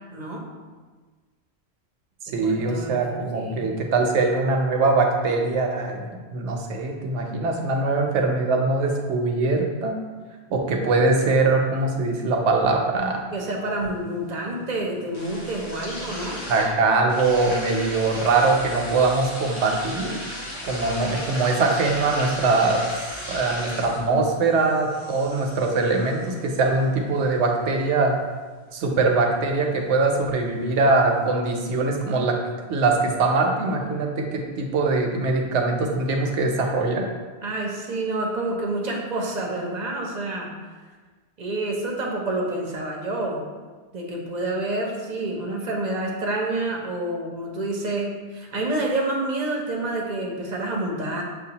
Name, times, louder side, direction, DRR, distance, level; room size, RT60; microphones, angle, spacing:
voice 1, 0.1-0.4 2.3-3.0 3.3-3.7 13.3-16.4 37.4-40.5 41.4-43.4 43.9-51.2, right 2 dB, 45° right, -1 dB, 0.7 m, -28 dB
voice 2, 2.3-6.0 6.3-10.0 10.5-13.2 16.5-20.1 20.6-22.8 23.3-28.2 28.7-32.3 32.7-37.1, right 3 dB, 80° right, 2 dB, 0.9 m, -22 dB
sound 1, 13.3-31.3, left 1 dB, 30° left, 0.8 m, -38 dB
6.4 x 2.3 x 2.8 m, 1.4 s
omnidirectional pair, 1.2 m